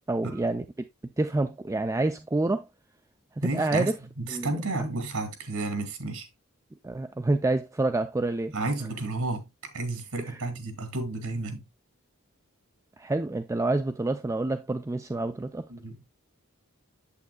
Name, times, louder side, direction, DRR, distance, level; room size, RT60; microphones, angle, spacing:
voice 1, 0.1-0.6 1.2-2.7 3.4-3.9 4.3-4.5 6.8-8.5 10.3-10.4 13.0-15.7, right 2 dB, 15° right, 0.3 m, -27 dB
voice 2, 3.4-3.9 4.2-6.3 8.5-9.5 9.7-11.6 15.7-16.1, right 2 dB, 85° right, 2.5 m, -31 dB
8.4 x 7.7 x 2.2 m
head